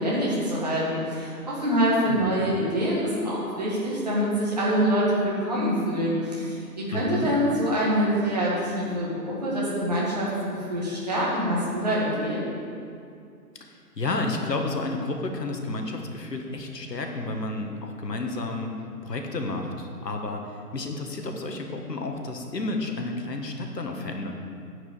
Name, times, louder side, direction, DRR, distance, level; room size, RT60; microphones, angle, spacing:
voice 1, 0.0-12.5, equal, 25° right, -6 dB, 1.8 m, -25 dB
voice 2, 2.0-2.6 6.9-7.3 13.6-18.7 19.0-24.3, left 2 dB, 80° left, 3 dB, 1.6 m, -31 dB
9.6 x 5.1 x 8.1 m, 2.4 s
hypercardioid pair, 175°, 49 cm